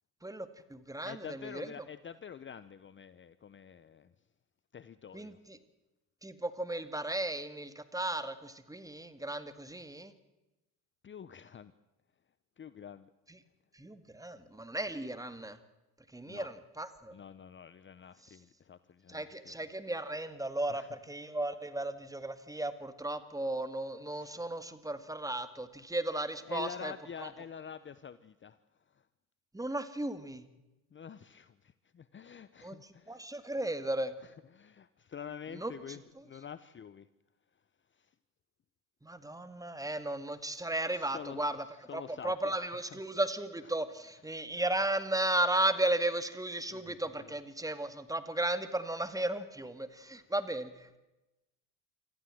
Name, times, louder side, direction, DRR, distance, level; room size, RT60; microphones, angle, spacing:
voice 1, 0.2-1.7 5.1-5.6 6.2-10.1 13.3-13.4 13.7-15.6 16.1-17.2 19.1-26.9 27.2-27.3 29.5-30.4 32.6-34.1 35.5-36.0 39.0-41.6 41.9-51.0, right 1 dB, 10° right, 11 dB, 2.0 m, -35 dB
voice 2, 1.0-4.1 4.7-5.4 11.0-11.7 12.6-13.1 16.3-16.5 17.1-19.5 20.7-20.9 24.1-24.5 26.4-28.6 28.9-29.0 30.9-33.2 34.2-37.1 38.0-38.1 40.9-41.4 41.9-43.0 46.7-47.4 49.9-50.3, left 7 dB, 30° left, 15 dB, 0.8 m, -47 dB
25.0 x 14.5 x 7.7 m, 1.0 s
supercardioid pair, 75°, 40 cm